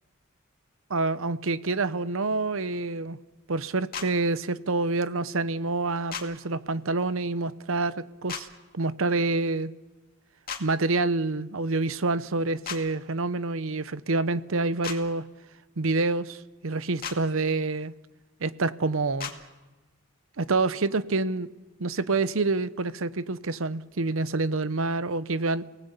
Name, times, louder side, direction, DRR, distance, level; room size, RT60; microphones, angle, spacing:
voice 1, 0.9-3.2 3.5-8.5 8.7-9.7 10.6-15.2 15.8-17.9 18.4-19.3 20.4-21.5 21.8-25.7, right 3 dB, 70° right, 0.9 m, -27 dB
sound 1, 3.9-4.1 6.1-6.3 8.3-8.4 10.5-10.6 12.6-12.8 14.8-15.0 17.0-17.2 19.2-19.4, left 7 dB, 45° left, 2.3 m, -34 dB
30.0 x 18.5 x 8.3 m
head